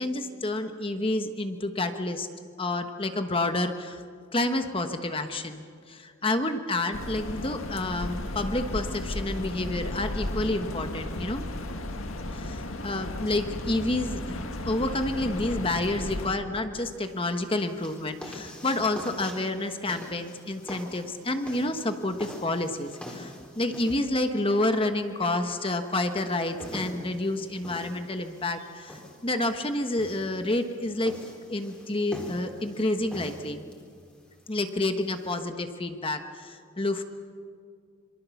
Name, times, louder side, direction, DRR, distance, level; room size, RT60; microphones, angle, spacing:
voice 1, 0.0-2.3 2.6-4.0 4.3-11.4 12.3-31.2 31.5-33.7 34.5-37.0, left 2 dB, 25° left, 7 dB, 1.2 m, -29 dB
sound 1, 6.9-16.3, left 1 dB, 80° left, 1.9 m, -34 dB
sound 2, 16.8-35.4, equal, 5° left, 3.8 m, -45 dB
26.5 x 24.5 x 7.1 m, 2.2 s
head